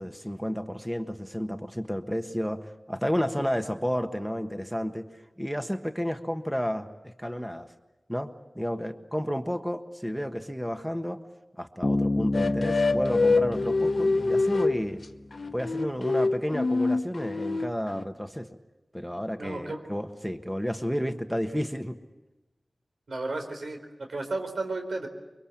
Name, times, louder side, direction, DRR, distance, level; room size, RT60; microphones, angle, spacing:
voice 1, 0.0-5.0 5.4-7.7 8.1-11.2 11.6-15.0 15.5-18.5 18.9-22.0, equal, ahead, 7 dB, 1.4 m, -31 dB
Bass guitar, 11.8-15.3, left 2 dB, 35° left, 1.2 m, -31 dB
sound 1, 12.3-14.8 15.4-18.0, left 3 dB, 65° left, 1.0 m, -25 dB
voice 2, 19.4-19.8 23.1-25.1, right 2 dB, 85° right, 5 dB, 4.3 m, -33 dB
24.5 x 24.0 x 8.7 m, 1.0 s
wide cardioid pair, 70°, 0 cm